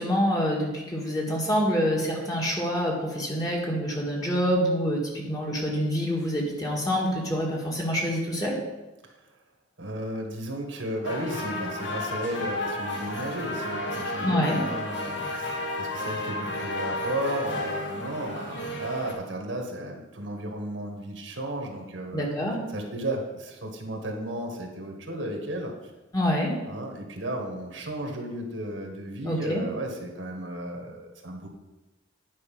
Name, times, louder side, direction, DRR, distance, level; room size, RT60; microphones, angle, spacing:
voice 1, 0.0-8.6 14.2-14.6 22.1-22.6 26.1-26.6 29.2-29.6, equal, 20° left, -2 dB, 1.9 m, -26 dB
voice 2, 9.8-22.3 22.7-25.7 26.7-31.5, right 1 dB, 80° right, 2 dB, 1.7 m, -34 dB
sound 1, 11.0-19.1, left 1 dB, 75° left, 1.6 m, -32 dB
9.7 x 5.5 x 5.5 m, 1.1 s
head